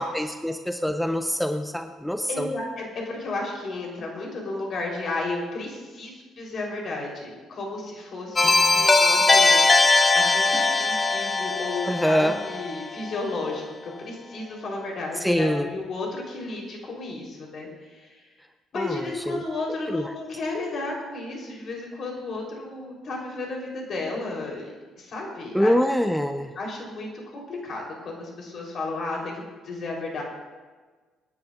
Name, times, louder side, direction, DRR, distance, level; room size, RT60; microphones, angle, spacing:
voice 1, 0.0-2.5 8.4-8.9 11.9-12.4 15.2-15.7 18.8-19.4 19.9-20.0 25.5-26.5, equal, 5° left, 7 dB, 0.8 m, -25 dB
voice 2, 2.3-18.2 18.7-24.7 25.0-25.7 26.3-30.2, left 2 dB, 50° left, -1 dB, 3.8 m, -33 dB
sound 1, 8.4-13.1, left 3 dB, 30° left, 1.3 m, -20 dB
25.5 x 10.5 x 2.5 m, 1.4 s
hypercardioid pair, 50°, 0 cm